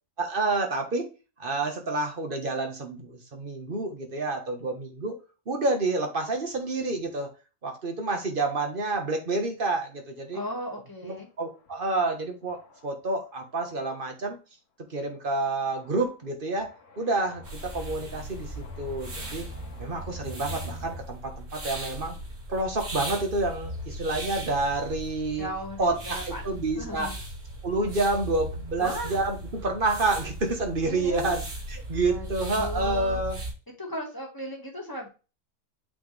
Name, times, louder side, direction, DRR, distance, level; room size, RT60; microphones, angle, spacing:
voice 1, 0.2-1.1 1.4-5.2 5.5-7.3 7.6-10.4 11.0-14.4 14.9-19.5 19.8-22.2 22.5-25.5 25.8-27.1 27.6-33.4, right 2 dB, 35° right, 3 dB, 1.6 m, -29 dB
voice 2, 10.3-11.3 25.4-27.2 28.8-29.2 30.8-31.3 32.1-33.2 33.8-35.1, equal, 15° left, 1 dB, 1.9 m, -36 dB
sound 1, 11.7-11.8 12.5-12.8 13.8-13.9 15.7-16.1 16.6-21.0, left 1 dB, 85° left, 1.9 m, -43 dB
sound 2, 17.4-33.5, right 1 dB, 75° right, 3.2 m, -38 dB
7.8 x 4.3 x 3.4 m, 0.31 s
omnidirectional pair, 1.5 m